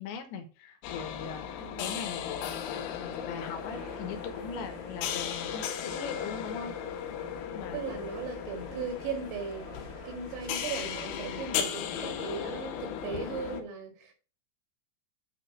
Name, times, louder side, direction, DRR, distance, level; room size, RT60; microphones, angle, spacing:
voice 1, 0.0-6.7 7.5-7.8, left 6 dB, 75° left, 2.5 m, -40 dB
sound 1, 0.8-13.6, left 9 dB, 90° left, 3.8 m, -36 dB
voice 2, 1.6-1.9 7.7-9.7 10.1-14.1, right 5 dB, 80° right, 4.3 m, -38 dB
sound 2, 3.0-12.6, right 5 dB, 50° right, 3.3 m, -51 dB
9.1 x 3.2 x 6.4 m
omnidirectional pair, 5.9 m